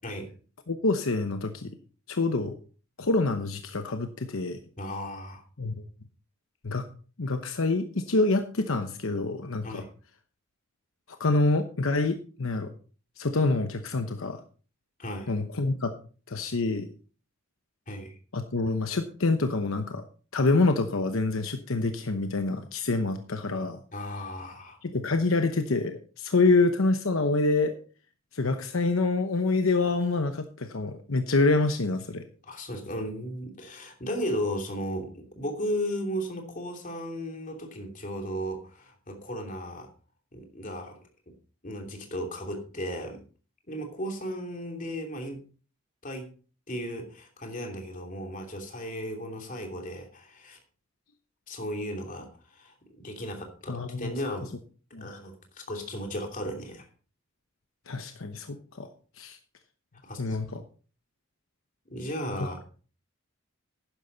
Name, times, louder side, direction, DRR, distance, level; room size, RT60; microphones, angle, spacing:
voice 1, 0.7-1.7 2.1-2.6 3.0-4.6 5.6-5.7 6.6-6.9 7.2-9.8 11.2-12.7 13.2-14.4 15.3-15.9 16.3-16.9 18.3-20.0 20.3-23.8 24.8-27.8 28.3-32.2 53.7-54.1 54.9-55.1 57.9-58.9 59.2-59.4 60.2-60.6 62.4-62.5, left 3 dB, 75° left, 7 dB, 0.9 m, -26 dB
voice 2, 4.8-5.4 9.6-9.9 15.0-15.3 17.9-18.2 23.9-24.8 32.4-39.9 40.3-41.0 41.3-41.4 41.6-43.2 43.7-45.4 46.0-46.3 46.7-50.6 51.5-54.5 55.0-56.9 60.0-60.4 61.9-62.6, equal, 40° left, 3 dB, 2.8 m, -35 dB
12.0 x 10.0 x 4.0 m, 0.39 s
head